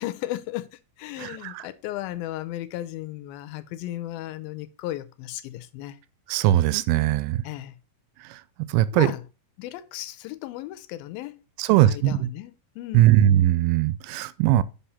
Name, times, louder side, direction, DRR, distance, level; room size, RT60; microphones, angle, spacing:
voice 1, 0.0-6.0 7.4-7.8 8.9-9.2 9.6-13.1, left 15 dB, 85° left, 2.4 m, -35 dB
voice 2, 1.2-1.7 6.3-7.4 8.2-8.4 8.7-9.1 11.6-12.3 12.9-14.6, right 13 dB, 85° right, 2.4 m, -20 dB
5.8 x 5.4 x 4.1 m
omnidirectional pair, 4.3 m